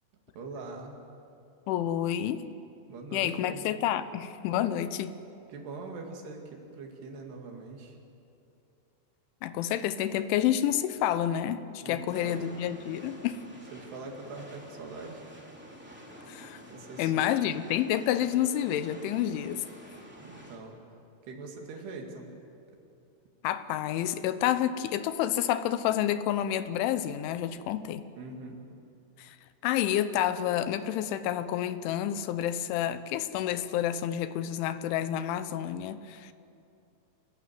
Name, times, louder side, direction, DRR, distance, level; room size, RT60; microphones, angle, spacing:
voice 1, 0.3-1.0 2.9-3.6 5.5-8.0 11.8-12.5 13.7-15.2 16.7-17.4 20.2-20.8 21.2-22.3 27.7-27.8 28.2-28.6, right 3 dB, 65° right, 2 dB, 4.2 m, -42 dB
voice 2, 1.7-2.5 3.1-5.1 9.4-13.4 16.3-16.6 17.0-19.6 23.4-28.0 29.2-29.4 29.6-36.3, left 11 dB, 90° left, 13 dB, 3.3 m, -29 dB
sound 1, 12.1-20.6, equal, 5° right, 1.9 m, -49 dB
26.5 x 15.0 x 9.5 m, 2.6 s
omnidirectional pair, 5.3 m